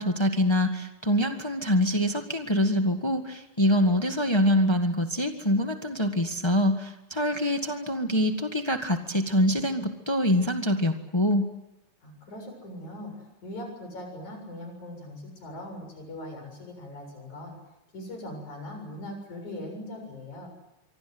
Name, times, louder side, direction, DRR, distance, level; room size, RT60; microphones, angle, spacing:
voice 1, 0.0-11.5, equal, 40° left, 5 dB, 0.3 m, -25 dB
voice 2, 12.0-17.6 17.9-20.5, left 1 dB, 60° left, 4 dB, 8.6 m, -40 dB
26.0 x 24.5 x 8.0 m, 0.90 s
omnidirectional pair, 3.9 m